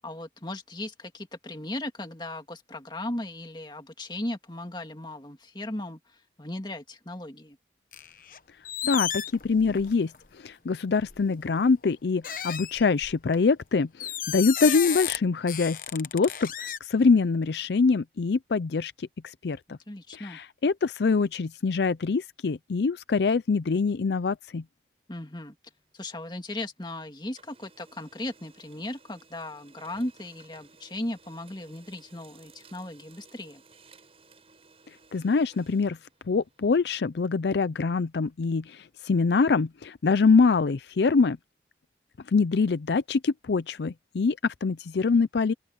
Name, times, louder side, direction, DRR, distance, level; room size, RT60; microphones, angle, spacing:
voice 1, 0.0-7.6 19.9-20.4 25.1-25.6 25.9-33.6, left 1 dB, 25° left, 2.0 m, -37 dB
sound 1, 7.9-8.4 8.6-10.2 11.0-11.2 12.2-13.3 14.0-15.2 15.5-16.8, left 10 dB, 50° left, 1.0 m, -33 dB
voice 2, 8.8-19.8 20.1-24.6 35.1-36.0 36.3-41.4 42.3-45.5, left 4 dB, 75° left, 0.5 m, -24 dB
Printer, 25.7-26.9 27.2-36.8, right 4 dB, 35° right, 6.8 m, -57 dB
head